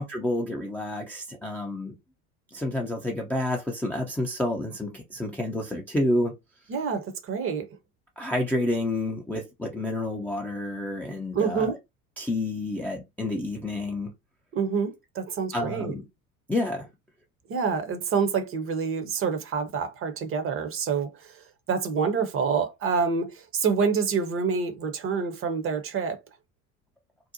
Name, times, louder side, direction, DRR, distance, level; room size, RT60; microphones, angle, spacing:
voice 1, 0.0-1.9 2.5-6.3 8.2-11.8 12.2-14.1 15.5-16.0 16.5-16.9, left 1 dB, 5° left, 0.4 m, -29 dB
voice 2, 6.7-7.7 11.3-11.8 14.5-15.9 17.5-26.2, right 5 dB, 30° right, 0.6 m, -27 dB
2.7 x 2.0 x 2.6 m
hypercardioid pair, 75°, 43 cm